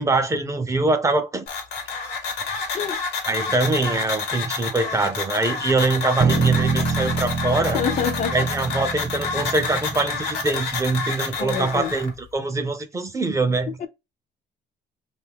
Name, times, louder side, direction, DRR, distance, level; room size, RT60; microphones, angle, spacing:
voice 1, 0.0-1.4 3.2-7.8 8.3-13.9, right 3 dB, 20° right, 0.5 m, -23 dB
sound 1, 1.5-12.1, left 4 dB, 80° left, 1.0 m, -29 dB
sound 2, 6.2-10.6, right 4 dB, 55° right, 0.7 m, -26 dB
voice 2, 7.7-8.4 9.3-9.4 11.4-11.9 13.8-13.9, left 7 dB, 45° left, 0.4 m, -26 dB
2.7 x 2.3 x 3.4 m
cardioid pair, 110°, 17 cm